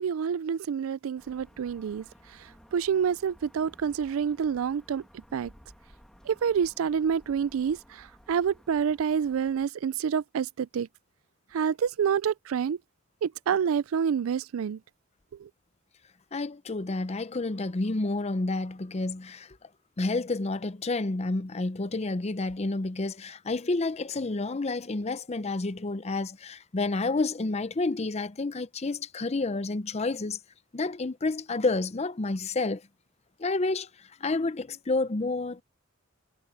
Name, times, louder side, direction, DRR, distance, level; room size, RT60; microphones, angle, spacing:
voice 1, 0.0-2.0 2.7-5.0 5.3-5.5 6.3-10.9 11.5-12.8 13.2-14.8 15.4-15.5, right 7 dB, 85° right, 0.4 m, -28 dB
sound 1, 1.2-9.7, equal, 5° left, 1.6 m, -56 dB
voice 2, 16.3-19.5 20.0-30.4 30.7-32.8 33.4-33.9 34.2-35.6, left 3 dB, 30° left, 0.6 m, -29 dB
head